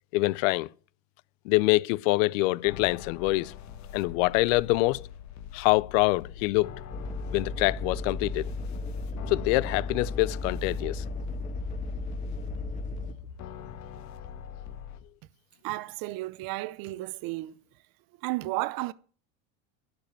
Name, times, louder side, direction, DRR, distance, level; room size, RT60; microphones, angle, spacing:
voice 1, 0.1-0.7 1.5-3.5 3.9-5.1 5.5-6.7 7.3-8.5 9.2-11.0, left 21 dB, 85° left, 0.6 m, -25 dB
sound 1, 2.6-15.0, left 8 dB, 50° left, 1.4 m, -43 dB
sound 2, 6.9-13.1, left 2 dB, 20° left, 1.9 m, -35 dB
voice 2, 15.6-17.6 18.2-18.9, right 19 dB, 65° right, 0.8 m, -33 dB
12.0 x 5.3 x 8.9 m
supercardioid pair, 125°, 37 cm